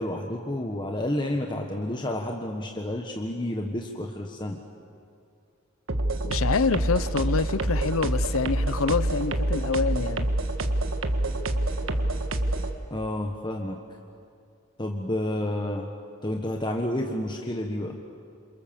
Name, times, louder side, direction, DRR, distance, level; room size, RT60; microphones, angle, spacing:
voice 1, 0.0-4.6 12.9-13.8 14.8-15.9 16.2-18.0, left 1 dB, 20° left, 1.4 m, -30 dB
sound 1, 5.9-12.7, right 1 dB, 65° right, 1.6 m, -26 dB
voice 2, 6.2-10.3, left 4 dB, 80° left, 0.7 m, -26 dB
28.0 x 28.0 x 7.1 m
head